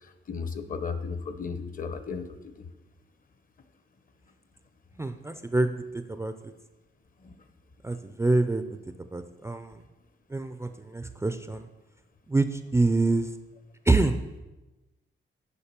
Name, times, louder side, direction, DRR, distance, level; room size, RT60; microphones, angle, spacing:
voice 1, 0.3-2.5 7.2-7.3, left 5 dB, 40° left, 10 dB, 0.7 m, -34 dB
voice 2, 5.0-5.7 6.1-6.3 7.8-8.6 9.1-9.8 10.3-11.7 12.3-13.3 13.9-14.2, right 2 dB, 15° right, 9 dB, 0.3 m, -26 dB
7.2 x 5.0 x 6.7 m, 1.1 s
wide cardioid pair, 145°, 21 cm